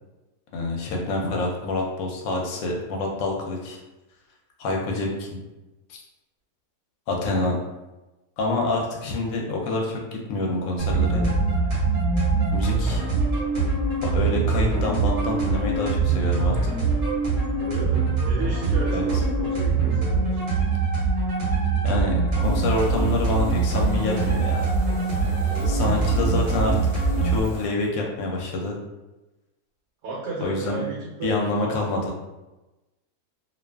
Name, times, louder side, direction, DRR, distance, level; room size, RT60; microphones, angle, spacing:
voice 1, 0.5-3.8 4.6-5.4 5.9-6.0 7.1-7.6 8.4-11.3 12.5-13.0 14.0-16.6 18.9-19.0 21.8-24.6 25.7-28.8 30.4-30.8 31.2-32.1, left 2 dB, 70° left, -1 dB, 0.9 m, -27 dB
sound 1, 10.8-27.4, right 4 dB, 40° right, 0.9 m, -23 dB
voice 2, 17.6-20.4 25.5-25.9 30.0-31.9, right 3 dB, 85° right, -5 dB, 1.2 m, -34 dB
sound 2, 22.4-27.7, left 1 dB, 35° left, 0.7 m, -41 dB
2.5 x 2.4 x 2.2 m, 1.1 s
omnidirectional pair, 1.6 m